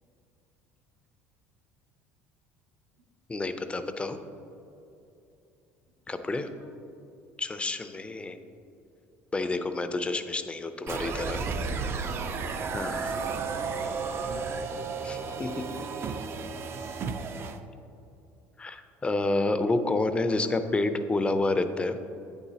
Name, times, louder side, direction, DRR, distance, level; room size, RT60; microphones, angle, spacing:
voice 1, 3.3-4.2 6.1-6.5 7.4-8.4 9.3-11.4 12.7-13.2 15.0-15.5 18.6-22.0, left 2 dB, 20° left, 9 dB, 0.5 m, -29 dB
voice 2, 6.3-6.7 11.7-14.5 15.5-17.1 20.3-20.8, right 1 dB, 85° right, -4 dB, 1.7 m, -50 dB
sound 1, 10.9-17.6, right 5 dB, 40° right, 0.5 m, -33 dB
8.8 x 7.0 x 2.8 m, 2.8 s
supercardioid pair, 95°, 6 cm